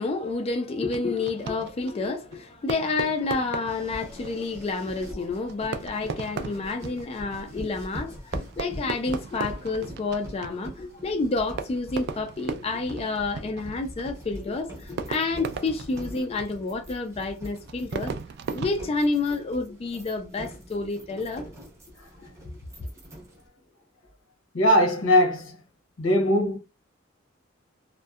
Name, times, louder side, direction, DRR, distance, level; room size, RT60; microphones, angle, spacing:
voice 1, 0.0-18.1 18.5-21.5, left 3 dB, 30° left, 0.3 m, -29 dB
Fireworks, 0.9-19.7, right 5 dB, 55° right, 0.3 m, -38 dB
sound 1, 3.7-23.5, equal, 15° right, 0.7 m, -43 dB
voice 2, 24.5-25.6 26.0-26.6, left 1 dB, 90° left, 0.8 m, -21 dB
2.6 x 2.1 x 2.3 m
head